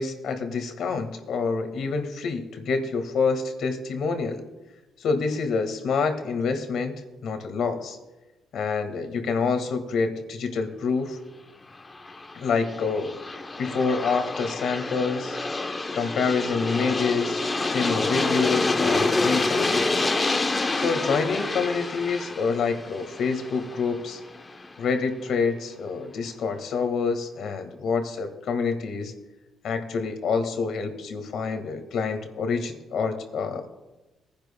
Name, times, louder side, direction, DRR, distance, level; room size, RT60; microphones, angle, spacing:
voice 1, 0.0-4.4 5.0-8.0 8.5-11.2 12.3-13.1 13.6-15.4 15.9-17.4 17.7-20.1 20.7-24.2 24.8-29.1 29.6-33.7, left 5 dB, 70° left, 7 dB, 1.7 m, -27 dB
Aircraft, 11.8-24.7, left 3 dB, 25° left, 0.9 m, -28 dB
22.5 x 10.5 x 2.2 m, 1.1 s
cardioid pair, 90°, 0 cm